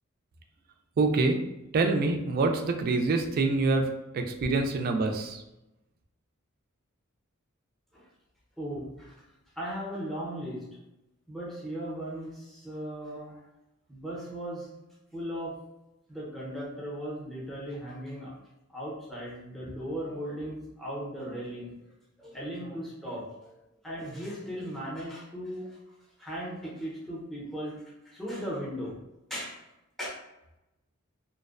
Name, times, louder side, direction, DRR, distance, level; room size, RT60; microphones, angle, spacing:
voice 1, 1.0-1.5 1.7-3.8 4.1-5.4, right 3 dB, 45° right, 4 dB, 0.3 m, -26 dB
voice 2, 8.6-9.3 9.6-10.7 11.3-13.4 13.9-14.8 15.1-15.6 16.1-18.4 18.7-21.7 22.2-23.5 23.8-25.8 26.2-29.0 29.3-29.6 30.0-30.1, equal, ahead, -6 dB, 0.6 m, -37 dB
2.5 x 2.1 x 2.4 m, 0.93 s
head